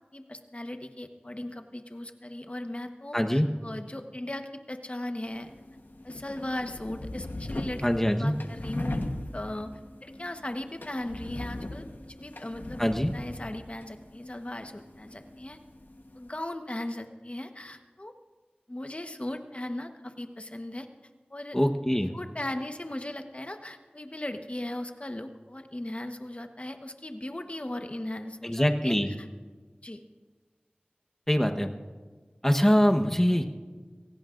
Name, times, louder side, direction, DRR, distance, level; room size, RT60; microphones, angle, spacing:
voice 1, 0.1-5.6 6.0-7.8 8.1-9.0 9.3-9.7 10.0-15.6 16.1-18.1 18.7-20.9 21.3-21.6 22.1-29.3 29.8-30.0, left 1 dB, 40° left, 6 dB, 1.2 m, -38 dB
voice 2, 3.1-3.5 7.8-8.3 12.8-13.1 21.5-22.1 28.4-29.1 31.3-31.7 32.4-33.4, equal, 10° left, 4 dB, 1.1 m, -23 dB
sound 1, 5.2-16.3, left 1 dB, 70° left, 1.2 m, -39 dB
24.5 x 17.0 x 2.6 m, 1.4 s
wide cardioid pair, 40°, 3 cm